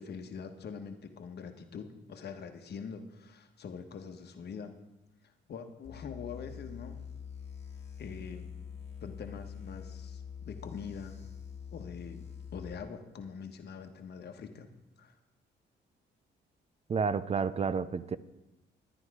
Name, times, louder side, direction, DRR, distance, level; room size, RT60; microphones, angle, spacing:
voice 1, 0.0-4.7 5.5-7.0 8.0-8.5 9.0-11.2 11.7-14.7 15.0-15.1, left 6 dB, 55° left, 1.2 m, -44 dB
sound 1, 5.8-12.7, left 7 dB, 30° left, 1.7 m, -45 dB
voice 2, 16.9-18.2, right 5 dB, 30° right, 0.5 m, -30 dB
11.0 x 9.8 x 4.8 m
cardioid pair, 90°, 20 cm